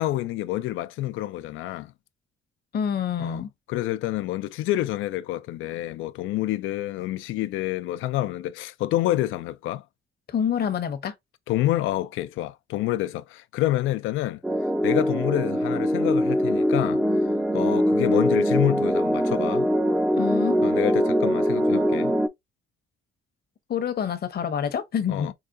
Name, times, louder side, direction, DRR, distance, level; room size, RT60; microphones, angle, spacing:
voice 1, 0.0-1.9 3.2-9.8 11.5-14.4 14.8-17.0 17.5-19.7 20.6-22.1 25.1-25.3, left 15 dB, 85° left, 0.4 m, -28 dB
voice 2, 2.7-3.5 10.3-11.1 20.2-20.6 23.7-25.3, left 8 dB, 50° left, 0.8 m, -27 dB
sound 1, 14.4-22.3, equal, 5° right, 0.4 m, -22 dB
4.8 x 2.2 x 2.5 m
cardioid pair, 90°, 20 cm